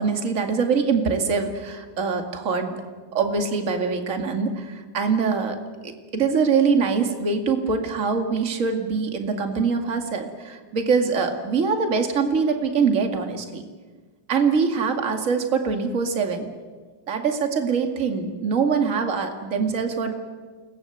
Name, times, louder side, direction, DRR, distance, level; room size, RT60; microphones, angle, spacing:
voice 1, 0.0-2.8 3.1-5.6 5.8-13.6 14.3-16.5 17.1-20.1, right 5 dB, 30° right, 4 dB, 1.5 m, -23 dB
29.5 x 20.5 x 8.0 m, 1.4 s
omnidirectional pair, 4.7 m